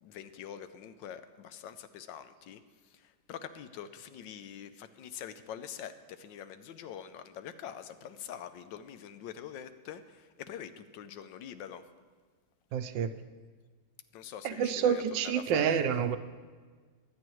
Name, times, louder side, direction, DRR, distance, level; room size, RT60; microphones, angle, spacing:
voice 1, 0.0-11.8 14.1-16.1, left 9 dB, 90° left, 11 dB, 1.4 m, -45 dB
voice 2, 12.7-13.1 14.4-16.2, right 8 dB, 90° right, 10 dB, 1.3 m, -28 dB
23.0 x 8.5 x 3.1 m, 1.5 s
omnidirectional pair, 1.9 m